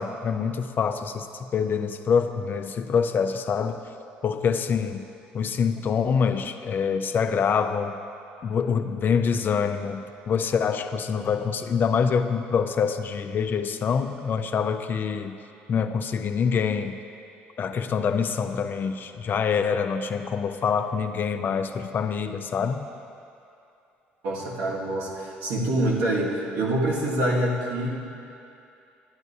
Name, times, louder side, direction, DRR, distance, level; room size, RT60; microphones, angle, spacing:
voice 1, 0.0-3.8 4.2-5.1 5.3-8.0 8.4-15.4 15.7-17.0 17.6-22.9, left 6 dB, 45° left, 8 dB, 0.5 m, -25 dB
voice 2, 24.2-28.0, right 1 dB, 80° right, -4 dB, 1.6 m, -26 dB
12.0 x 9.4 x 2.7 m, 2.7 s
supercardioid pair, 75°, 5 cm